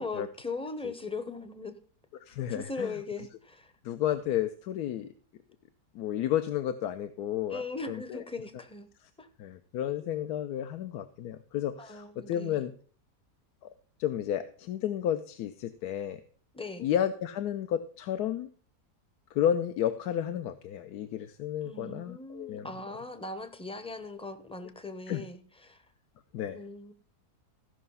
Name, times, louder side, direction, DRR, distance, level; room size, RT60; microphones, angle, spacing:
voice 1, 0.0-1.7 2.5-3.7 7.5-8.9 9.2-9.3 11.8-12.6 16.5-16.9 21.6-25.9 26.5-26.9, left 3 dB, 10° left, 10 dB, 0.4 m, -39 dB
voice 2, 2.2-2.9 3.8-5.1 5.9-8.2 9.4-12.7 13.6-13.7 14.0-16.2 16.8-18.5 19.3-22.7 25.1-25.2 26.3-26.6, left 10 dB, 85° left, 10 dB, 1.2 m, -32 dB
15.0 x 5.7 x 5.5 m, 0.44 s
omnidirectional pair, 1.6 m